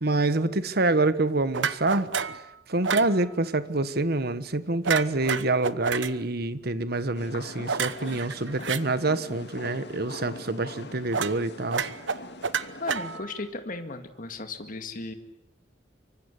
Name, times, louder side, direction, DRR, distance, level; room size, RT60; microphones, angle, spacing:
voice 1, 0.0-2.1 2.7-11.9, right 2 dB, 55° right, 13 dB, 1.4 m, -26 dB
sound 1, 1.5-2.4 2.8-3.1 4.8-6.1 7.7-8.8 11.1-11.4 11.7-13.4, right 6 dB, 75° right, 1.0 m, -29 dB
sound 2, 7.1-13.2, left 2 dB, 60° left, 2.4 m, -43 dB
voice 2, 12.8-15.1, left 3 dB, 45° left, 6 dB, 2.2 m, -36 dB
25.5 x 24.5 x 8.3 m, 0.84 s
head